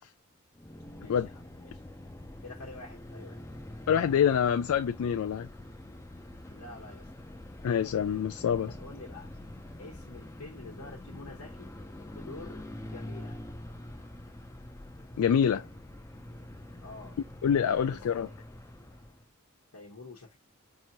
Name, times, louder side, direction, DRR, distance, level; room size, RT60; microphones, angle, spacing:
sound 1, 0.5-19.3, left 1 dB, 15° left, 0.5 m, -45 dB
voice 1, 1.0-1.8 2.4-3.4 6.5-7.1 8.7-9.3 9.8-11.7 12.1-12.6 12.9-13.4 16.8-17.2 17.8-18.3 19.7-20.4, left 3 dB, 85° left, 1.0 m, -47 dB
voice 2, 3.9-5.5 7.6-8.7 15.2-15.7 17.4-18.3, left 8 dB, 65° left, 0.3 m, -26 dB
4.8 x 2.7 x 2.9 m
head